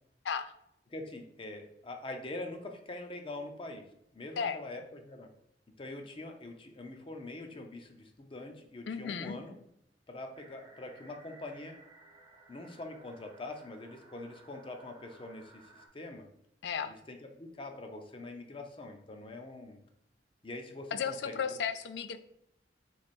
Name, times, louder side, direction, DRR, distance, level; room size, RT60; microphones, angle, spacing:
voice 1, 0.9-3.8 4.1-5.3 5.8-9.6 10.1-11.8 12.5-16.3 16.9-19.8 20.4-21.1 21.5-21.6, left 2 dB, 30° left, 4 dB, 0.5 m, -44 dB
voice 2, 8.9-9.4 16.6-16.9 20.9-22.2, left 6 dB, 80° left, 11 dB, 0.4 m, -34 dB
sound 1, 10.3-15.9, right 2 dB, 25° right, 0.7 m, -58 dB
3.4 x 3.2 x 4.1 m, 0.77 s
head